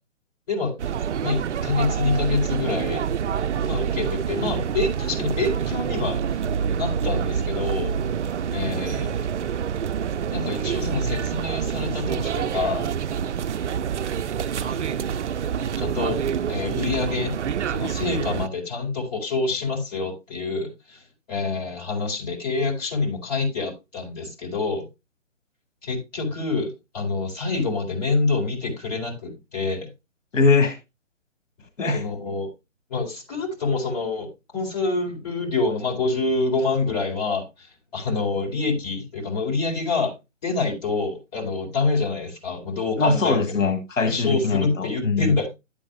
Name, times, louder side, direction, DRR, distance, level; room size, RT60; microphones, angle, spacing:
sound 1, 0.8-18.5, right 8 dB, 65° right, 0.5 m, -27 dB
voice 1, 1.2-3.0 3.6-6.2 6.8-7.9 8.5-9.1 10.3-12.9 14.6-15.2 15.8-16.2 16.5-17.4 17.7-21.0 21.3-24.8 25.8-29.9 31.9-32.5 32.9-40.1 40.4-43.4 44.1-45.5, left 3 dB, 35° left, -2 dB, 4.1 m, -26 dB
voice 2, 30.3-30.8 31.8-32.0 43.0-45.3, left 4 dB, 75° left, 8 dB, 1.7 m, -21 dB
11.5 x 8.6 x 2.3 m, 0.24 s
hypercardioid pair, 160°, 38 cm